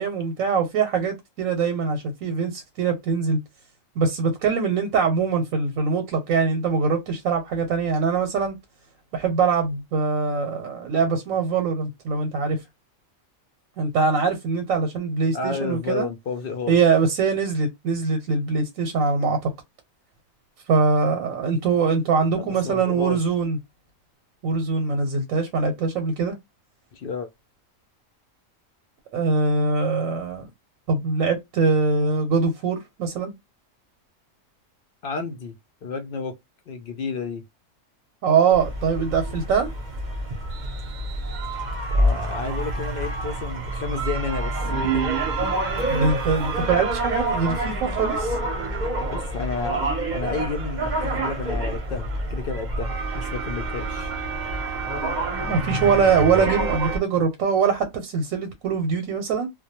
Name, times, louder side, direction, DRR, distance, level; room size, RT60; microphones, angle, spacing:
voice 1, 0.0-3.4 4.0-8.6 9.1-12.6 13.8-16.1 16.7-19.5 20.7-23.6 24.4-26.3 29.1-30.5 30.9-33.3 38.2-39.7 45.9-48.4 55.4-59.5, right 5 dB, 90° right, 1.0 m, -23 dB
voice 2, 15.3-16.7 22.3-23.2 26.9-27.3 35.0-35.5 35.8-36.4 36.7-37.4 41.9-45.0 45.7-46.0 49.1-49.8 50.1-54.1, left 4 dB, 60° left, 0.6 m, -31 dB
sound 1, 38.5-57.0, right 2 dB, 45° right, 0.7 m, -27 dB
2.2 x 2.1 x 2.8 m
omnidirectional pair, 1.4 m